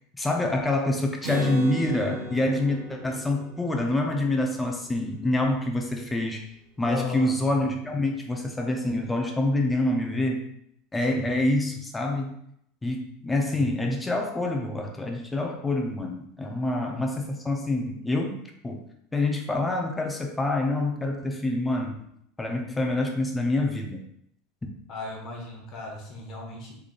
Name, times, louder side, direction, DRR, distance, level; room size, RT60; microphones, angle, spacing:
voice 1, 0.1-6.5 6.8-10.4 10.9-12.3 12.8-18.4 18.6-18.8 19.1-22.0 22.4-24.0, left 2 dB, 10° left, 2 dB, 0.7 m, -26 dB
Acoustic guitar, 1.2-4.9, equal, 65° right, 0.8 m, -37 dB
voice 2, 6.8-7.3 11.1-11.3 24.9-26.8, left 3 dB, 45° left, -1 dB, 0.9 m, -36 dB
3.5 x 3.4 x 2.4 m, 0.72 s
figure-of-eight pair, 80°, 0 cm